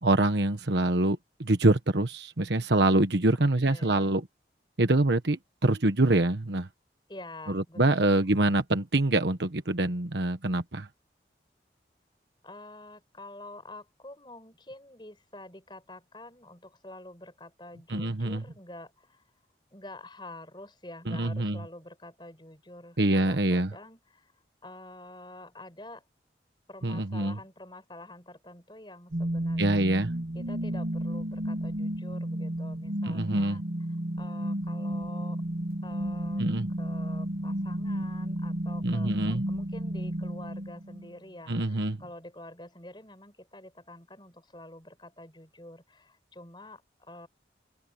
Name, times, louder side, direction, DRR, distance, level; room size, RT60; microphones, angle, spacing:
voice 1, 0.0-4.2 4.8-6.7 7.5-10.9 17.9-18.4 21.1-21.6 23.0-23.7 26.8-27.3 29.6-30.1 33.0-33.6 36.4-36.7 38.8-39.4 41.5-42.0, right 2 dB, 75° right, 1.2 m, -25 dB
voice 2, 3.3-4.1 7.1-8.1 12.4-19.2 19.7-24.3 24.6-26.0 26.7-29.8 30.3-33.6 34.2-35.4 35.8-36.4 36.8-47.3, left 1 dB, 25° left, 6.1 m, -47 dB
sound 1, 29.1-41.1, right 1 dB, 55° right, 1.2 m, -32 dB
head